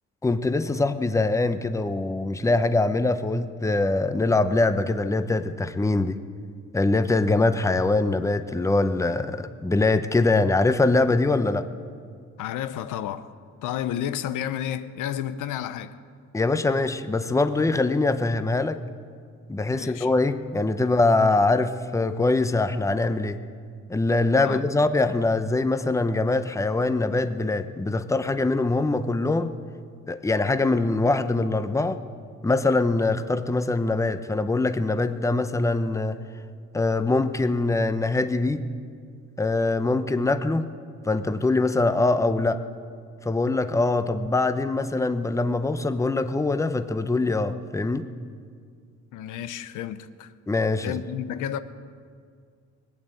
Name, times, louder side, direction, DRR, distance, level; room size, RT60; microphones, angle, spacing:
voice 1, 0.2-6.2 6.7-11.6 16.3-18.8 19.5-23.4 23.9-29.5 30.1-32.0 32.4-36.2 36.7-38.6 39.4-40.7 41.0-42.6 43.2-48.1 50.5-50.9, left 2 dB, 10° left, 0.7 m, -23 dB
voice 2, 12.4-13.3 13.6-16.0 19.7-20.1 24.4-24.6 49.1-50.3 50.8-51.6, left 10 dB, 90° left, 0.7 m, -31 dB
20.0 x 8.7 x 7.9 m
cardioid pair, 90°, 30 cm